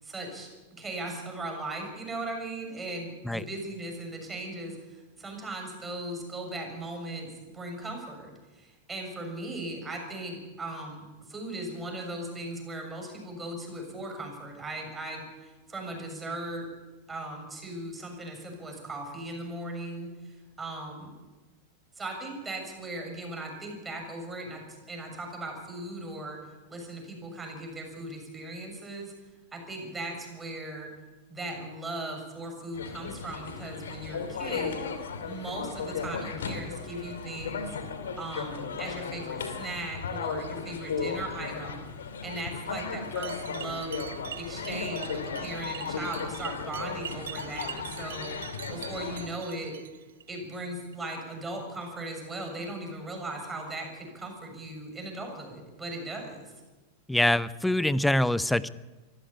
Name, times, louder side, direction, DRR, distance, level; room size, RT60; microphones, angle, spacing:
voice 1, 0.0-16.6 17.1-21.1 21.9-26.4 26.7-29.1 29.5-30.9 31.3-34.8 35.2-37.8 38.2-41.9 42.2-44.0 44.4-48.3 48.7-49.7 50.3-56.5, right 2 dB, 15° right, 2 dB, 6.7 m, -38 dB
sound 1, 32.7-49.3, left 5 dB, 65° left, 2.7 m, -36 dB
sound 2, 43.2-50.6 50.9-51.4 51.7-52.0 52.6-52.7 53.4-53.5 54.2-54.3 55.0-55.1, right 9 dB, 65° right, 0.7 m, -44 dB
voice 2, 57.1-58.7, left 1 dB, 5° left, 18 dB, 0.8 m, -24 dB
24.5 x 15.0 x 8.5 m, 1.2 s
figure-of-eight pair, 90°, 0 cm